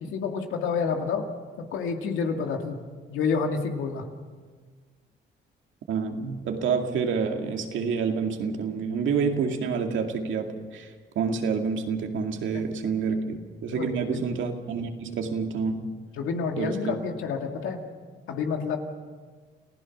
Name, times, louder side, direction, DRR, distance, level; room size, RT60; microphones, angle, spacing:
voice 1, 0.0-1.2 1.6-2.8 3.1-4.1 13.7-14.2 16.1-17.8 18.3-18.8, left 5 dB, 85° left, 3 dB, 2.4 m, -29 dB
voice 2, 5.9-15.8 16.6-17.0, right 5 dB, 75° right, 3 dB, 2.3 m, -28 dB
29.0 x 16.0 x 6.0 m, 1.5 s
cardioid pair, 90°, 20 cm